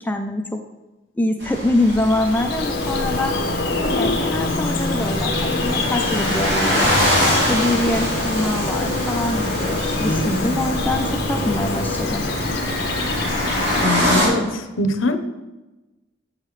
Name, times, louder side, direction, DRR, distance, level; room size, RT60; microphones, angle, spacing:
voice 1, 0.0-0.6 1.2-3.4 3.7-7.0 7.5-12.2, left 1 dB, 10° left, 4 dB, 0.4 m, -24 dB
sound 1, 1.4-14.3, equal, 60° right, 2.8 m, -25 dB
Bird vocalization bird call bird song, 1.8-13.8, left 2 dB, 50° left, 0.9 m, -25 dB
voice 2, 13.8-15.2, left 1 dB, 80° left, 8 dB, 0.7 m, -22 dB
8.5 x 6.5 x 3.2 m, 1.1 s
head